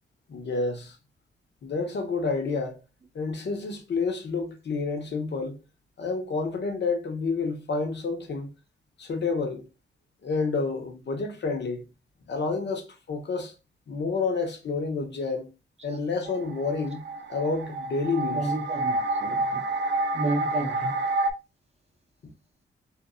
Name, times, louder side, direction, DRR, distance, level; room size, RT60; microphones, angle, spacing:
voice 1, 0.3-1.0 1.6-2.8 3.1-5.6 6.0-8.5 9.0-9.6 10.2-11.8 12.3-13.5 13.9-15.5 15.8-17.0 17.3-18.5, left 4 dB, 65° left, 1.0 m, -29 dB
sound 1, 16.3-21.3, right 2 dB, 65° right, 0.5 m, -28 dB
voice 2, 18.3-19.6 20.1-21.0, right 2 dB, 30° right, 0.8 m, -31 dB
3.8 x 2.8 x 2.2 m
wide cardioid pair, 115°, 20 cm